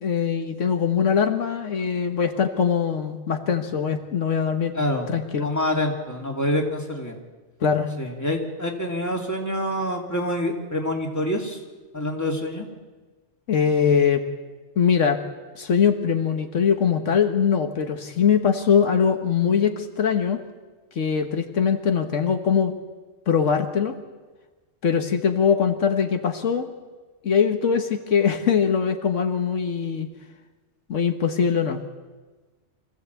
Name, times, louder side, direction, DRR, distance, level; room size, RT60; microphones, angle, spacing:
voice 1, 0.0-4.7 5.1-5.5 7.6-7.9 13.5-14.3 14.8-15.2 15.6-20.4 21.0-22.7 23.3-24.0 24.8-26.7 27.2-30.1 30.9-31.8, left 7 dB, 80° left, 6 dB, 1.6 m, -22 dB
voice 2, 4.7-5.1 5.4-7.2 8.0-11.6 11.9-12.7, left 1 dB, 15° left, 0 dB, 2.7 m, -26 dB
25.0 x 15.5 x 8.2 m, 1.3 s
omnidirectional pair, 1.3 m